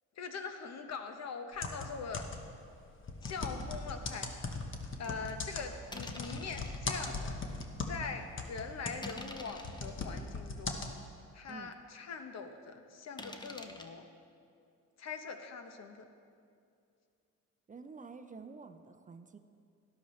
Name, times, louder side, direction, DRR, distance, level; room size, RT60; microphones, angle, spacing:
voice 1, 0.2-2.3 3.2-4.3 5.0-7.4 7.9-10.8 11.3-14.1 15.0-16.1, left 5 dB, 60° left, 6 dB, 1.0 m, -42 dB
sound 1, 1.5-2.6 3.0-8.1 8.4-10.9, left 3 dB, 40° left, 1.1 m, -39 dB
sound 2, 3.2-3.4 4.0-4.1 5.0-5.3 5.9-6.8 7.4-7.5 8.0-8.2 9.0-9.9 10.6-10.7 11.2-11.3 11.5-11.6 13.2-13.9, left 2 dB, 15° left, 0.8 m, -47 dB
voice 2, 17.7-19.4, right 4 dB, 25° right, 8 dB, 0.5 m, -49 dB
12.0 x 11.5 x 3.2 m, 2.4 s
cardioid pair, 90°, 30 cm